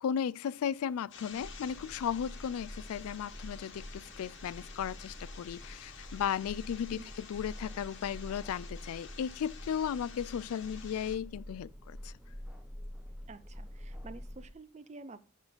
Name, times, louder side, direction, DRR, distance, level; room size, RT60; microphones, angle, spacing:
voice 1, 0.0-12.1, left 8 dB, 80° left, 0.3 m, -35 dB
sound 1, 1.1-11.1, left 6 dB, 55° left, 1.3 m, -51 dB
sound 2, 1.3-14.5, equal, 5° right, 0.8 m, -47 dB
voice 2, 13.3-15.2, right 3 dB, 30° right, 0.5 m, -49 dB
7.0 x 5.9 x 5.1 m
head